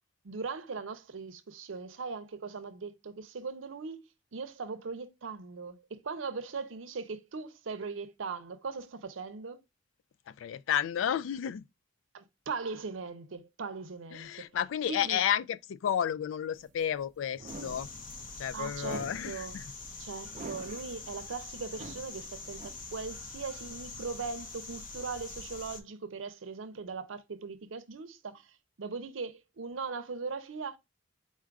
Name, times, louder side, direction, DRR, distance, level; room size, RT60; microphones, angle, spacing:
voice 1, 0.2-4.0 4.3-9.6 12.1-14.4 14.9-15.2 18.5-19.5 20.0-30.8, right 4 dB, 90° right, 0.6 m, -39 dB
voice 2, 10.3-11.6 14.1-17.9 18.4-19.7, left 9 dB, 80° left, 0.3 m, -32 dB
sound 1, 16.5-23.2, right 3 dB, 40° right, 0.5 m, -47 dB
sound 2, 17.5-25.8, left 3 dB, 45° left, 0.7 m, -44 dB
4.3 x 2.4 x 4.5 m
head